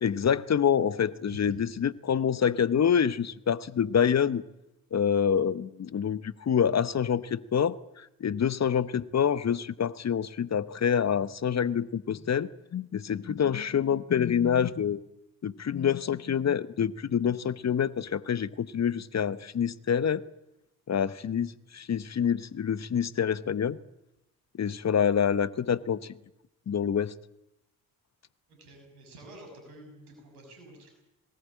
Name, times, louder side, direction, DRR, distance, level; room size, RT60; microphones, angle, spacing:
voice 1, 0.0-4.4 4.9-7.8 8.2-15.0 15.4-20.3 20.9-23.8 24.6-26.0 26.7-27.1, left 8 dB, 35° left, 1.0 m, -26 dB
voice 2, 28.5-30.9, right 1 dB, 85° right, 6.6 m, -49 dB
21.5 x 19.0 x 8.6 m
hypercardioid pair, 45°, 44 cm